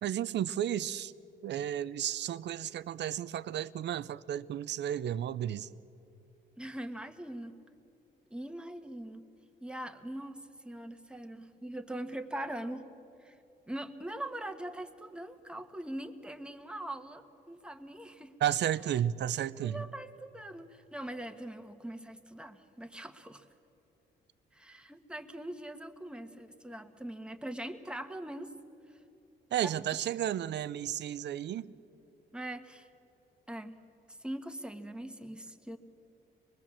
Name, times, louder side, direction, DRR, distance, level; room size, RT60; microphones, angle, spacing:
voice 1, 0.0-1.1 1.4-5.7 18.4-19.9 29.5-31.7, right 11 dB, 60° right, 17 dB, 0.6 m, -33 dB
voice 2, 6.6-7.5 8.3-9.3 9.6-12.9 13.2-13.3 13.7-18.3 19.6-23.4 24.5-28.5 29.6-29.7 32.3-32.9 33.5-33.8 34.1-35.8, right 1 dB, 5° right, 7 dB, 1.4 m, -42 dB
24.5 x 20.5 x 7.4 m, 2.9 s
cardioid pair, 90°, 20 cm